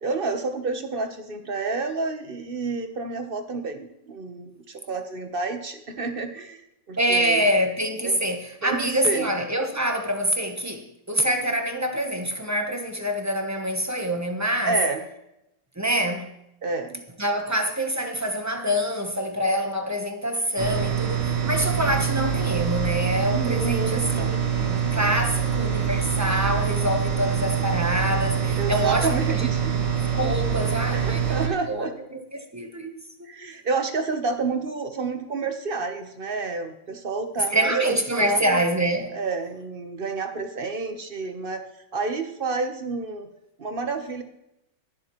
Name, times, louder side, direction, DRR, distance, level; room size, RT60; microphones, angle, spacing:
voice 1, 0.0-7.4 8.0-8.2 8.6-9.3 14.6-15.0 16.6-17.0 23.3-24.4 28.6-29.7 30.9-31.9 33.2-37.8 38.2-38.6 39.1-41.6 41.9-43.3 43.6-44.2, right 4 dB, 35° right, 1.0 m, -29 dB
voice 2, 7.0-14.8 15.8-16.3 17.2-29.5 30.1-32.9 37.5-39.1, equal, 15° right, 0.6 m, -26 dB
sound 1, 20.6-31.5, right 7 dB, 60° right, 2.8 m, -25 dB
21.0 x 7.6 x 3.1 m
omnidirectional pair, 2.0 m